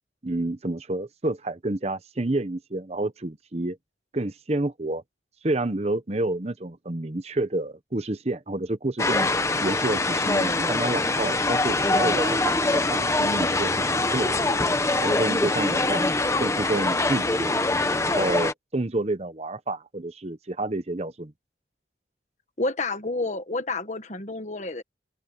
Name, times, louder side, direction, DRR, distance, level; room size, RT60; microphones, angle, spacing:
voice 1, 0.2-3.8 4.1-5.0 5.4-9.3 9.6-14.6 15.0-16.1 16.4-17.7 18.0-21.3, right 2 dB, 35° right, 0.9 m, -29 dB
sound 1, 9.0-18.5, left 2 dB, 15° left, 0.9 m, -24 dB
voice 2, 22.6-24.8, left 2 dB, 40° left, 1.5 m, -29 dB
open air
head